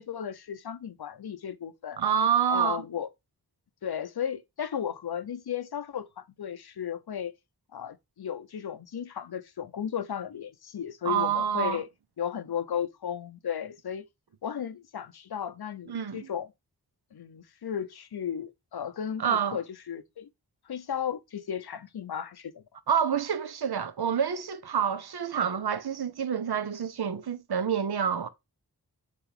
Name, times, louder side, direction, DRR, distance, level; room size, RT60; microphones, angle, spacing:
voice 1, 0.0-2.0 2.5-3.1 3.8-7.3 7.7-11.9 12.2-14.1 14.4-16.5 17.1-20.3 20.7-22.6, left 8 dB, 85° left, 0.7 m, -35 dB
voice 2, 2.0-2.8 11.0-11.8 15.9-16.3 19.2-19.6 22.9-28.3, right 7 dB, 85° right, 0.8 m, -27 dB
8.3 x 3.1 x 4.9 m
wide cardioid pair, 75°, 37 cm